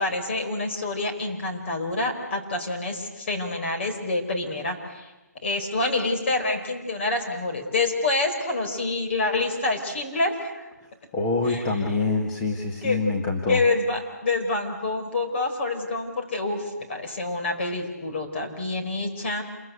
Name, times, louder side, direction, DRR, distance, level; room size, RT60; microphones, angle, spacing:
voice 1, 0.0-5.1 5.4-10.7 11.5-11.8 12.8-13.0 13.5-19.4, left 2 dB, 40° left, 3 dB, 4.6 m, -27 dB
voice 2, 11.1-13.6, left 3 dB, 20° left, 0 dB, 1.7 m, -25 dB
28.0 x 22.5 x 8.3 m, 1.1 s
hypercardioid pair, 165°, 9 cm